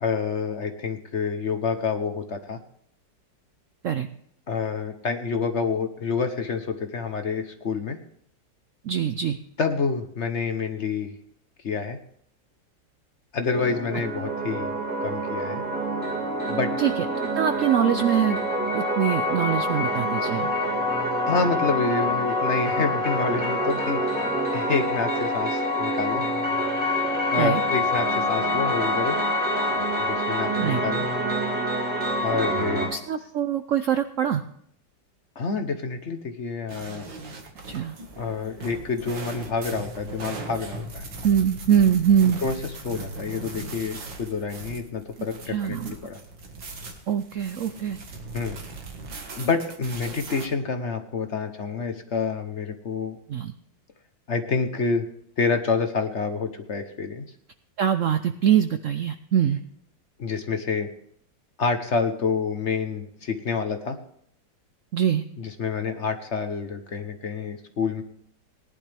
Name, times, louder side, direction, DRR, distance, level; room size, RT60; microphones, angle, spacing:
voice 1, 0.0-2.6 4.5-8.0 9.6-11.1 11.6-12.0 13.3-14.7 15.0-15.6 16.5-16.7 21.2-24.0 24.5-26.2 27.3-29.2 30.0-31.1 32.2-32.9 35.4-37.0 38.2-41.0 42.2-42.5 42.8-46.2 48.3-48.6 49.4-53.2 54.3-55.0 55.4-57.2 60.2-60.9 61.6-64.0 65.4-68.0, left 5 dB, 45° left, 7 dB, 1.0 m, -28 dB
voice 2, 8.8-9.4 16.8-17.1 17.3-18.4 18.7-20.5 27.4-27.6 30.6-30.8 32.9-34.4 37.7-37.9 41.2-42.4 45.5-46.0 47.1-48.0 53.3-53.5 57.8-59.6 64.9-65.2, right 9 dB, 90° right, 9 dB, 0.6 m, -23 dB
sound 1, 13.5-32.9, equal, 5° right, 5.3 m, -26 dB
sound 2, 36.7-50.5, right 2 dB, 70° right, 2.4 m, -39 dB
18.5 x 11.0 x 3.4 m, 0.68 s
omnidirectional pair, 2.1 m